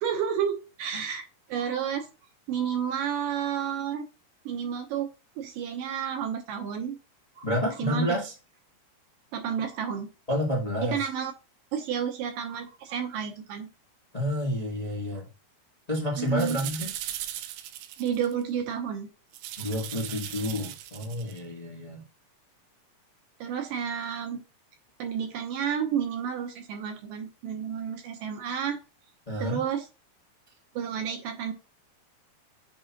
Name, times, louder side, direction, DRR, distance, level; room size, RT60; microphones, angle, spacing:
voice 1, 0.0-1.2 1.5-2.1 2.5-4.0 4.5-5.1 5.4-7.0 7.4-7.5 7.8-8.2 9.3-10.1 10.8-11.3 11.7-13.7 16.2-16.6 18.0-19.1 23.4-24.4 25.0-28.8 29.4-29.9 30.8-31.5, right 8 dB, 70° right, 4 dB, 2.2 m, -31 dB
voice 2, 7.4-8.3 10.3-11.0 14.1-15.3 15.9-16.9 19.6-22.0 29.3-29.6, equal, 70° left, -4 dB, 0.3 m, -29 dB
sound 1, 16.3-18.4 19.3-21.4, right 13 dB, 90° right, 2.7 m, -38 dB
8.5 x 4.7 x 2.9 m, 0.29 s
omnidirectional pair, 4.6 m